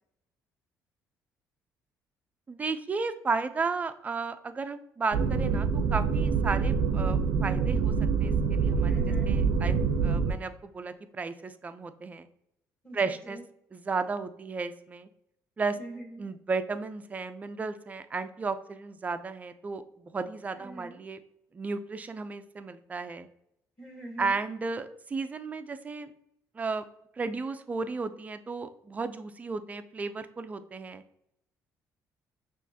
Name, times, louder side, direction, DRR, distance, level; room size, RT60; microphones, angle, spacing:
voice 1, 2.5-7.9 8.2-8.9 9.2-12.3 12.9-13.4 13.7-15.1 15.6-15.8 16.2-21.2 21.5-23.3 24.2-26.1 26.5-26.8 27.2-31.0, right 4 dB, 20° right, 10 dB, 0.3 m, -34 dB
sound 1, 5.1-10.3, right 5 dB, 80° right, 0.5 m, -26 dB
voice 2, 8.8-9.3 12.8-13.4 15.7-16.3 20.5-21.0 23.8-24.4, right 1 dB, 10° left, 0 dB, 1.4 m, -43 dB
5.9 x 2.5 x 2.7 m, 0.79 s
cardioid pair, 115°, 7 cm